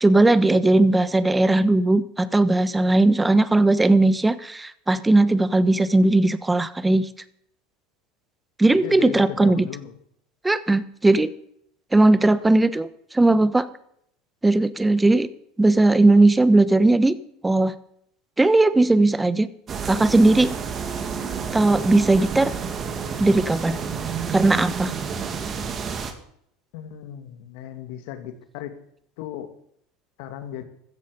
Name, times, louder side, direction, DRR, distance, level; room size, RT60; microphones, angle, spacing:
voice 1, 0.0-7.1 8.6-9.7 10.4-11.3 11.9-12.9 13.1-13.7 14.4-15.3 15.6-17.2 17.4-17.7 18.4-19.5 19.8-20.5 21.5-22.5 23.2-23.8 24.3-24.9, right 2 dB, 10° right, 14 dB, 1.2 m, -18 dB
voice 2, 8.7-9.9 26.7-28.7 29.2-29.5 30.2-30.6, left 11 dB, 70° left, 8 dB, 2.6 m, -36 dB
sound 1, 19.7-26.1, right 6 dB, 35° right, 2.7 m, -30 dB
15.5 x 13.5 x 5.4 m, 0.69 s
supercardioid pair, 105°, 0 cm